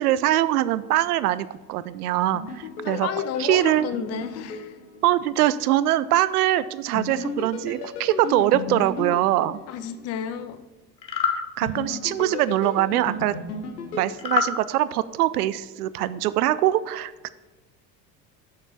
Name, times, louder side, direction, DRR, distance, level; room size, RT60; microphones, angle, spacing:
voice 1, 0.0-3.1 3.4-3.9 5.0-9.6 11.6-13.3 13.9-17.3, right 14 dB, 65° right, 16 dB, 0.5 m, -23 dB
sound 1, 2.3-5.4 6.9-10.1 11.6-15.0, left 4 dB, 65° left, 1.2 m, -35 dB
voice 2, 2.8-4.8 9.7-10.6, left 8 dB, 30° left, 10 dB, 0.5 m, -31 dB
sound 2, 11.0-11.4 14.2-14.5, left 7 dB, 85° left, 0.8 m, -24 dB
6.7 x 4.8 x 5.7 m, 1.2 s
figure-of-eight pair, 65°, 50 cm